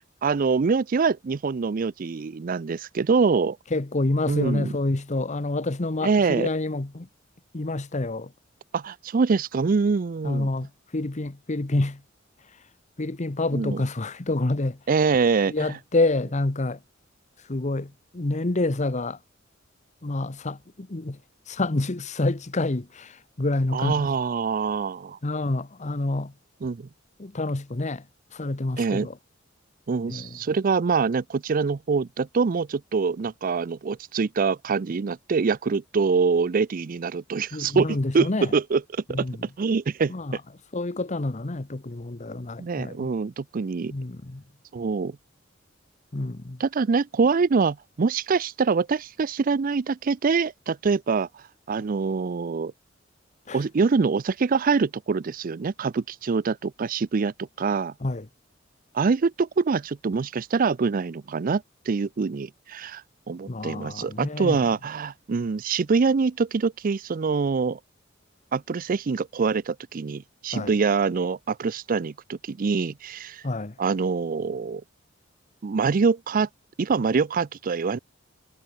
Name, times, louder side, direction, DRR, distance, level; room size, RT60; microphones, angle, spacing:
voice 1, 0.2-3.6 4.3-4.8 6.0-6.5 8.7-10.5 13.5-13.8 14.9-15.8 23.7-25.2 26.6-26.9 28.8-29.1 29.9-39.3 39.6-40.1 42.6-43.9 44.7-45.2 46.6-52.7 53.5-57.9 58.9-67.8 68.5-73.4 73.8-74.8 75.6-76.5 76.8-78.0, right 5 dB, 45° right, 0.4 m, -25 dB
voice 2, 3.7-7.1 7.5-8.3 10.2-12.0 13.0-14.8 15.5-16.8 17.5-19.2 20.0-21.2 21.5-24.0 25.2-26.3 27.2-28.0 28.3-29.1 30.1-30.3 37.5-38.5 39.1-39.4 40.1-40.4 40.7-43.1 43.9-44.4 46.1-46.6 53.5-53.6 58.0-58.3 63.5-64.6 70.5-70.7 73.4-73.7, left 2 dB, 35° left, 1.0 m, -28 dB
head